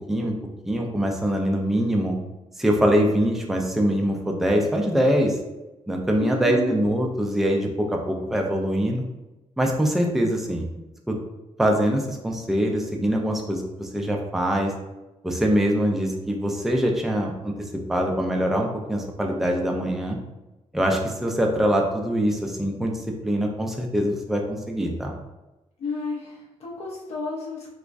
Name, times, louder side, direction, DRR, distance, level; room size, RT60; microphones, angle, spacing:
voice 1, 0.6-2.2 2.6-5.4 5.9-9.0 9.6-10.6 11.1-11.2 11.6-14.7 15.2-20.2 20.7-22.9 23.2-25.1, equal, 5° right, 1 dB, 0.3 m, -23 dB
voice 2, 6.2-6.8 25.8-27.7, left 3 dB, 60° left, -3 dB, 0.5 m, -31 dB
3.4 x 3.0 x 2.5 m, 1.0 s
wide cardioid pair, 160°, 12 cm